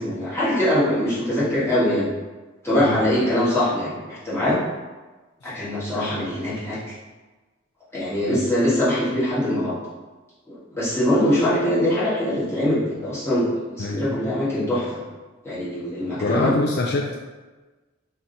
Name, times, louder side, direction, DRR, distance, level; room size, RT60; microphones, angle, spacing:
voice 1, 0.0-2.1 2.6-4.6 5.4-6.9 7.9-9.8 10.5-13.5 13.7-15.0 15.4-16.5, left 1 dB, 15° left, -10 dB, 1.5 m, -22 dB
voice 2, 13.8-14.2 16.2-17.2, left 3 dB, 55° left, 0 dB, 0.4 m, -25 dB
3.7 x 2.8 x 3.9 m, 1.3 s
head